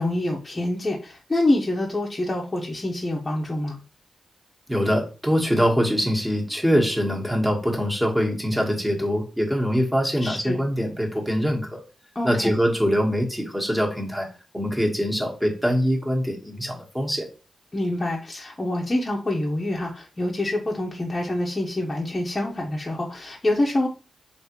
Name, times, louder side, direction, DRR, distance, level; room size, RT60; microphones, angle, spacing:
voice 1, 0.0-3.8 10.2-10.6 12.1-12.5 17.7-23.9, left 1 dB, 30° left, -1 dB, 0.7 m, -26 dB
voice 2, 4.7-11.8 12.2-14.3 14.5-17.3, equal, 10° right, 0 dB, 1.2 m, -23 dB
3.4 x 2.6 x 2.9 m, 0.35 s
supercardioid pair, 45°, 0 cm